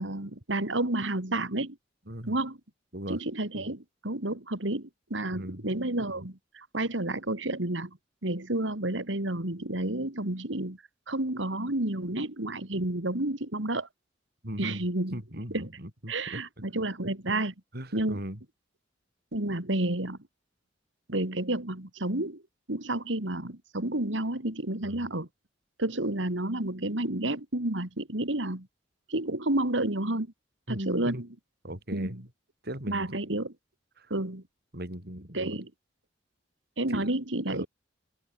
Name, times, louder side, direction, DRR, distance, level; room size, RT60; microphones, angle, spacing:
voice 1, 0.0-1.8 2.3-2.6 3.1-8.0 8.2-10.8 11.1-13.9 14.6-15.2 15.5-15.7 16.1-17.5 17.9-18.2 19.3-20.2 21.1-22.4 22.7-25.3 25.8-28.7 29.1-30.3 30.7-31.3 31.9-32.2 32.9-33.5 34.1-34.4 35.3-35.7 36.8-37.6, right 1 dB, 85° right, 3.1 m, -30 dB
voice 2, 2.1-2.4 2.9-3.2 5.3-5.7 14.4-14.8 15.1-16.4 17.7-18.4 24.8-25.0 30.7-31.2 31.6-32.3 32.6-33.2 34.0-34.1 34.7-35.5 36.9-37.1 37.5-37.7, right 1 dB, 60° right, 7.6 m, -38 dB
open air
head